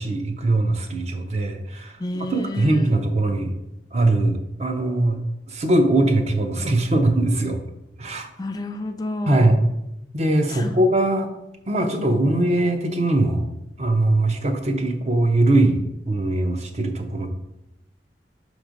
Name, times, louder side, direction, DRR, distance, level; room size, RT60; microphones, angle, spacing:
voice 1, 0.0-2.0 2.3-3.5 3.9-5.2 5.5-7.6 8.0-8.3 9.3-9.6 10.1-11.3 11.7-13.5 13.8-17.3, right 2 dB, 40° right, 5 dB, 0.7 m, -21 dB
voice 2, 2.0-3.0 8.4-9.6 10.5-10.7 11.8-12.5, left 2 dB, 20° left, 6 dB, 0.3 m, -31 dB
6.3 x 3.2 x 5.1 m, 0.86 s
head